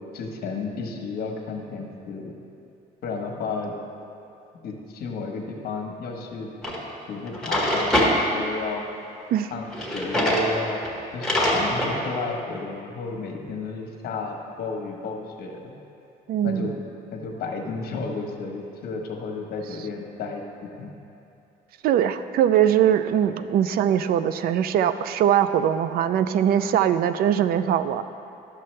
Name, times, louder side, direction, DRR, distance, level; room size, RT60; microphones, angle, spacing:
voice 1, 0.1-2.4 3.0-3.7 4.6-6.5 7.1-8.9 9.5-10.8 11.1-15.7 16.4-16.7 17.1-20.9, left 4 dB, 65° left, 2 dB, 1.1 m, -32 dB
Drawer open or close, 6.6-6.8 7.3-8.1 9.7-10.5 10.8-10.9 11.2-11.9, equal, 5° left, 1.5 m, -23 dB
voice 2, 16.3-16.7 21.8-28.0, right 10 dB, 65° right, 12 dB, 0.4 m, -21 dB
11.5 x 6.6 x 3.2 m, 2.7 s
cardioid pair, 110°, 17 cm